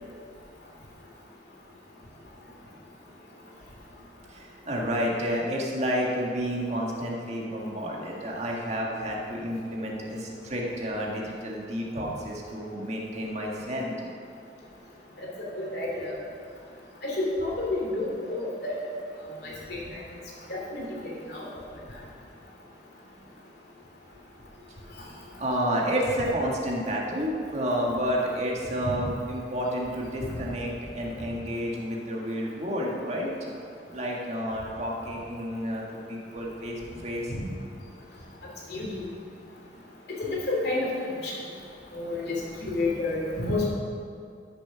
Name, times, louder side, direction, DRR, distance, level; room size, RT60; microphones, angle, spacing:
voice 1, 4.3-14.1 25.4-33.5 33.9-37.3, equal, 40° right, -3 dB, 1.8 m, -30 dB
voice 2, 15.5-16.1 17.0-18.8 19.4-19.8 20.5-20.9 21.3-21.5 30.3-30.4 38.7-39.1 40.2-40.9 41.2-41.3 41.9-42.4 42.6-43.6, left 2 dB, 65° left, -3 dB, 2.9 m, -29 dB
12.5 x 7.2 x 5.9 m, 2.4 s
head